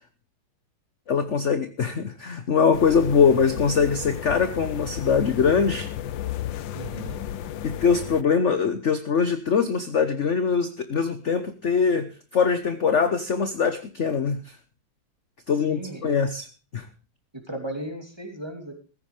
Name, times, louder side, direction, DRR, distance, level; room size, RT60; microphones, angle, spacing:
voice 1, 1.1-5.9 7.6-14.6 15.5-16.4 16.7-16.9, left 6 dB, 45° left, 10 dB, 1.1 m, -22 dB
sound 1, 2.7-8.2, left 11 dB, 75° left, 1.5 m, -33 dB
voice 2, 6.7-7.2 15.7-16.1 17.5-18.7, right 1 dB, 10° right, 4 dB, 3.1 m, -35 dB
15.5 x 15.0 x 3.4 m, 0.35 s
omnidirectional pair, 2.1 m